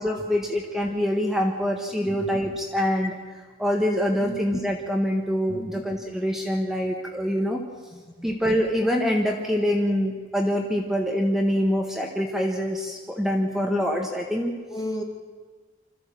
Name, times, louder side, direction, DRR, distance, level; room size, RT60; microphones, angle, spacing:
voice 1, 0.0-3.2 3.6-7.6 8.2-14.5, equal, ahead, 1 dB, 1.5 m, -25 dB
voice 2, 5.5-5.9 7.9-8.3 14.7-15.0, left 1 dB, 20° left, 4 dB, 2.0 m, -34 dB
25.5 x 13.5 x 7.6 m, 1.4 s
head